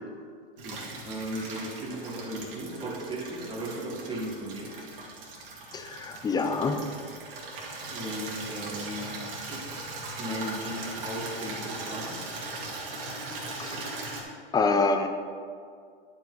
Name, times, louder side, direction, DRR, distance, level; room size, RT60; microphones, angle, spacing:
voice 1, 0.6-4.8 7.9-9.2 9.5-9.7 10.2-12.3, equal, 15° right, -2 dB, 1.6 m, -36 dB
Water tap faucet / Liquid, 0.6-14.2, right 2 dB, 65° right, 2.1 m, -39 dB
voice 2, 5.7-6.8 13.6-13.9 14.5-15.1, left 4 dB, 15° left, 7 dB, 0.5 m, -26 dB
10.5 x 5.0 x 3.9 m, 2.2 s
hypercardioid pair, 120°, 30 cm